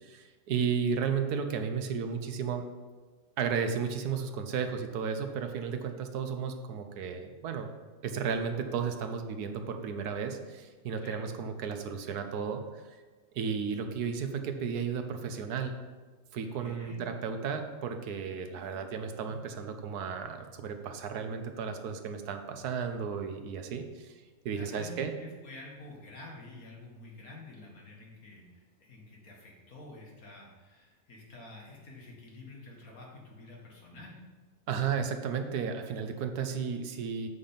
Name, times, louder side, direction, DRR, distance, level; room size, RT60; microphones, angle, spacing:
voice 1, 0.0-2.6 3.4-7.7 8.0-12.8 13.3-15.8 16.3-24.1 24.4-25.1 34.7-37.3, right 6 dB, 90° right, 6 dB, 1.4 m, -33 dB
voice 2, 16.6-17.0 24.6-34.2, left 2 dB, 65° left, -2 dB, 2.3 m, -49 dB
8.1 x 5.1 x 5.6 m, 1.4 s
omnidirectional pair, 1.6 m